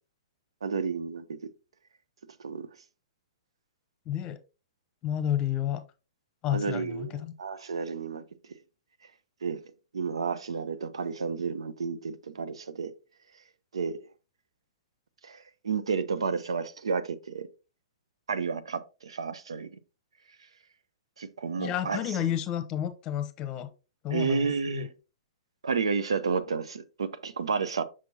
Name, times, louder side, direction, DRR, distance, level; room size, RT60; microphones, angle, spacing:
voice 1, 0.6-1.5 2.4-2.7 6.5-8.2 8.5-8.6 9.4-9.6 9.9-12.9 13.7-14.1 15.2-17.5 18.3-19.7 21.2-22.2 24.1-24.9 25.6-27.8, right 5 dB, 70° right, 0.6 m, -31 dB
voice 2, 4.1-4.4 5.0-5.8 6.4-7.3 21.6-23.7 24.0-24.9, left 11 dB, 30° left, 0.9 m, -31 dB
6.2 x 5.9 x 2.7 m
figure-of-eight pair, 110°, 3 cm